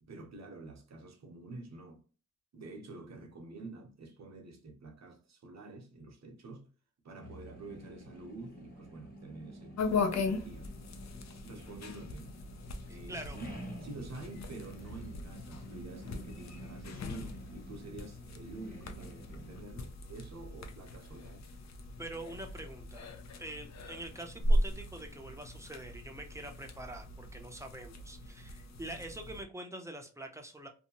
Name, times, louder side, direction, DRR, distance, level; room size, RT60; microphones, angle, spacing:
voice 1, 0.0-2.0 2.5-6.7 7.0-10.7 11.4-12.4 12.9-13.5 13.8-21.5, right 2 dB, 55° right, 0.8 m, -48 dB
sound 1, 7.2-19.6, equal, 30° left, 1.1 m, -50 dB
sound 2, 9.8-29.4, left 1 dB, 60° left, 0.5 m, -38 dB
voice 2, 12.9-13.4 22.0-23.1 23.4-30.7, right 1 dB, 10° right, 0.5 m, -45 dB
2.6 x 2.1 x 2.8 m
wide cardioid pair, 100°, 31 cm